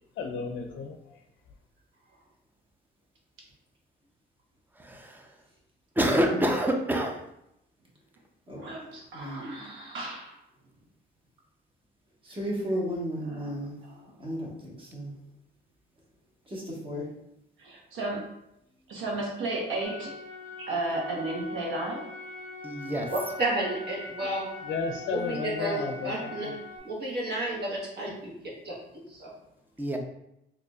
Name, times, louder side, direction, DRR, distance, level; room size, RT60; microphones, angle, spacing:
voice 1, 0.2-1.2 24.6-26.6, left 4 dB, 75° left, 4 dB, 0.4 m, -34 dB
voice 2, 4.8-5.3 6.0-7.2 22.6-23.1 29.8-30.0, equal, 10° right, 3 dB, 0.5 m, -26 dB
voice 3, 6.0-6.5 8.5-8.7 9.1-9.5 12.2-13.8 14.2-15.1 16.5-17.1, equal, 25° right, -4 dB, 1.3 m, -34 dB
voice 4, 8.6-10.4 13.2-14.0 17.6-18.3 18.9-20.2 20.7-22.1, right 2 dB, 80° right, -2 dB, 1.1 m, -34 dB
sound 1, 19.8-26.8, left 3 dB, 15° left, 1.4 m, -42 dB
voice 5, 23.1-24.5 25.1-26.5 26.8-28.7 29.1-29.3, right 1 dB, 55° right, -3 dB, 1.3 m, -31 dB
4.1 x 2.7 x 2.3 m, 0.81 s
cardioid pair, 90°, 20 cm